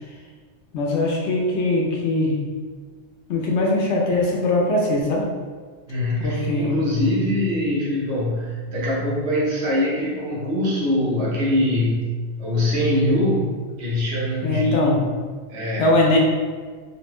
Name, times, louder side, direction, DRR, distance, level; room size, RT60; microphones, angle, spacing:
voice 1, 0.7-2.5 3.3-5.3 6.2-6.8 14.4-15.0 15.8-16.2, left 2 dB, 70° left, -2 dB, 0.9 m, -21 dB
voice 2, 5.9-14.8 15.5-15.9, left 1 dB, 65° right, -6 dB, 1.1 m, -23 dB
3.1 x 2.6 x 3.0 m, 1.5 s
omnidirectional pair, 1.3 m